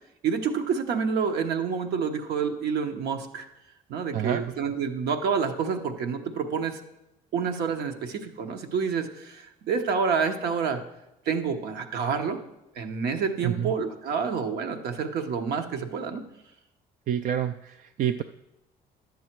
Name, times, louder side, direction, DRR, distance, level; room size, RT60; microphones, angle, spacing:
voice 1, 0.2-3.5 3.9-6.8 7.3-10.8 11.3-12.4 12.8-16.2, right 6 dB, 70° right, 6 dB, 1.1 m, -28 dB
voice 2, 4.1-4.4 13.4-13.7 17.1-18.2, right 10 dB, 50° right, 10 dB, 0.4 m, -28 dB
11.0 x 7.2 x 4.6 m, 0.90 s
cardioid pair, 110°, 17 cm